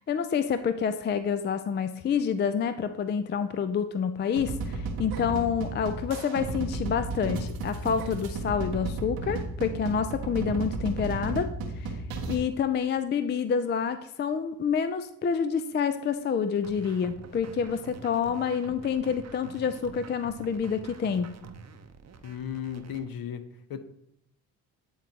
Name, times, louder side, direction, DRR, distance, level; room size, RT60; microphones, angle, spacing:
voice 1, 0.0-11.9 12.3-21.3, left 7 dB, 25° left, 11 dB, 0.4 m, -28 dB
sound 1, 4.4-12.4, right 3 dB, 90° right, 1.0 m, -33 dB
sound 2, 16.6-23.0, right 5 dB, 35° right, 0.7 m, -46 dB
voice 2, 22.2-23.4 23.7-23.8, left 8 dB, 55° left, 10 dB, 0.8 m, -35 dB
9.4 x 3.9 x 2.8 m, 0.77 s
supercardioid pair, 55°, 43 cm